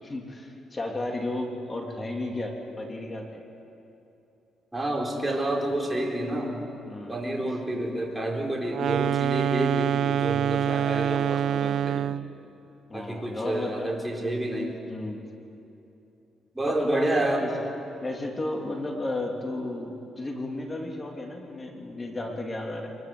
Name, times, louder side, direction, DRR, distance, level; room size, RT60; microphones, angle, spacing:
voice 1, 0.0-3.4 6.9-7.3 12.9-13.9 14.9-15.2 16.8-17.5 18.0-23.0, left 2 dB, 25° left, 2 dB, 3.1 m, -33 dB
voice 2, 4.7-6.6 7.1-12.1 12.9-14.8 16.5-17.5, right 1 dB, 10° right, 0 dB, 4.3 m, -29 dB
sound 1, 8.7-12.3, right 10 dB, 70° right, 0.4 m, -26 dB
24.0 x 21.0 x 7.9 m, 2.9 s
cardioid pair, 90°, 0 cm